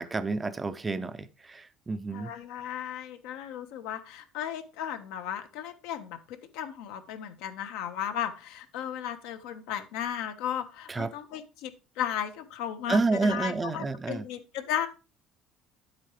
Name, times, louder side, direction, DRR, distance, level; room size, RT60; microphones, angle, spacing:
voice 1, 0.0-2.3 10.9-11.1 12.9-14.3, right 3 dB, 15° right, 0.4 m, -29 dB
voice 2, 2.1-14.9, left 10 dB, 80° left, 1.2 m, -35 dB
10.0 x 8.1 x 3.2 m
cardioid pair, 165°, 0 cm